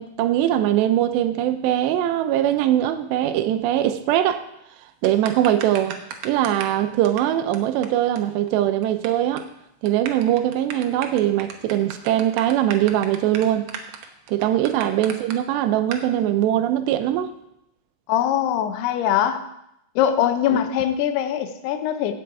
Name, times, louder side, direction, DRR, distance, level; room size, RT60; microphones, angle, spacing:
voice 1, 0.0-4.4 5.0-6.0 6.2-9.5 9.8-13.7 14.3-17.3 20.5-20.6, right 12 dB, 85° right, 10 dB, 2.9 m, -21 dB
sound 1, 5.0-6.8 7.0-7.2 7.5-7.6 7.8-7.9 8.2-8.3 8.5-9.1 9.4-9.5 9.9-15.4 15.9-16.0, right 8 dB, 70° right, 2.1 m, -35 dB
voice 2, 18.1-19.5 20.0-22.1, left 10 dB, 80° left, 8 dB, 2.7 m, -22 dB
16.0 x 7.2 x 4.7 m, 0.80 s
omnidirectional pair, 4.9 m